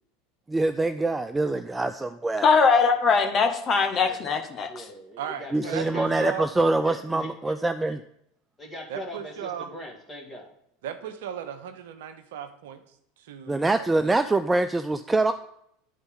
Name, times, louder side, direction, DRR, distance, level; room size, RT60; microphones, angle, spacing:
voice 1, 0.5-2.5 5.5-8.0 13.5-15.3, right 2 dB, 15° right, 9 dB, 0.3 m, -24 dB
voice 2, 2.4-4.9, left 5 dB, 40° left, 5 dB, 0.9 m, -21 dB
voice 3, 4.0-4.4 4.7-6.1 6.8-7.5 8.6-10.5, equal, 20° left, 1 dB, 1.8 m, -41 dB
voice 4, 5.2-6.5 8.9-9.7 10.8-12.8 13.2-14.1, right 9 dB, 70° right, 9 dB, 0.7 m, -36 dB
10.0 x 4.0 x 3.7 m, 0.73 s
hypercardioid pair, 85°, 0 cm